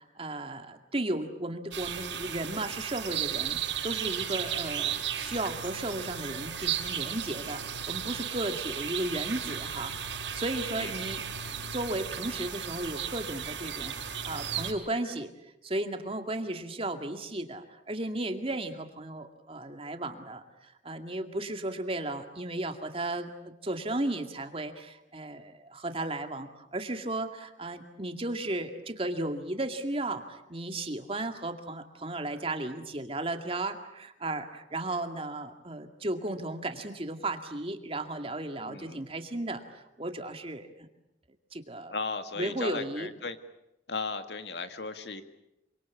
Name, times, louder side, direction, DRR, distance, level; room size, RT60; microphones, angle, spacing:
voice 1, 0.0-11.2 11.7-40.7 41.5-41.9 42.4-43.1, right 1 dB, 30° right, 6 dB, 2.3 m, -35 dB
sound 1, 1.7-14.7, right 8 dB, 90° right, 6.1 m, -35 dB
voice 2, 38.6-39.0 41.9-43.4 43.9-45.2, left 4 dB, 65° left, 9 dB, 2.0 m, -36 dB
27.0 x 25.5 x 8.5 m, 0.87 s
head